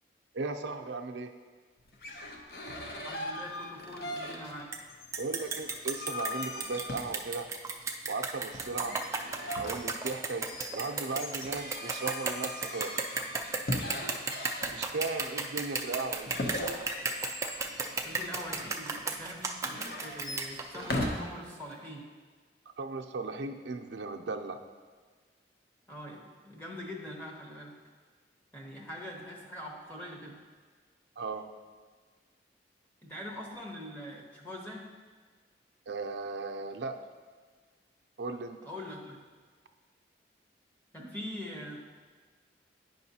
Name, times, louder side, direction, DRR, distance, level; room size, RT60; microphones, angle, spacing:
voice 1, 0.3-1.3 5.2-7.5 8.1-9.0 9.6-10.5 10.7-12.9 14.7-16.3 22.8-24.6 31.2-31.5 35.9-37.0 38.2-38.6, right 3 dB, 80° right, 5 dB, 0.5 m, -36 dB
sound 1, 1.9-4.6 4.9-7.5 8.5-15.1 16.3-18.8 19.6-21.1, left 1 dB, 55° left, 0.7 m, -39 dB
voice 2, 3.0-4.7 18.0-19.5 20.0-22.1 25.9-27.8 28.5-30.4 33.0-34.9 38.6-39.2 40.9-41.8, left 1 dB, 10° left, -2 dB, 0.8 m, -43 dB
sound 2, 4.7-4.8 5.1-21.0, right 4 dB, 15° right, 0.3 m, -34 dB
9.2 x 5.3 x 2.8 m, 1.5 s
head